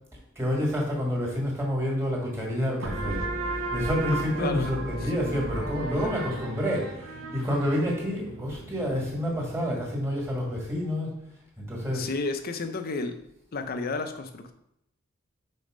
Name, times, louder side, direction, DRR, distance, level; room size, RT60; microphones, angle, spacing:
voice 1, 0.3-3.2 3.5-11.1 11.6-12.1, equal, 15° right, -2 dB, 1.8 m, -28 dB
sound 1, 2.8-10.1, right 2 dB, 65° right, 1.0 m, -35 dB
voice 2, 4.4-4.7 5.0-5.1 5.9-6.1 11.9-13.2 13.5-14.5, left 3 dB, 45° left, 8 dB, 0.5 m, -32 dB
5.3 x 4.1 x 5.0 m, 0.79 s
head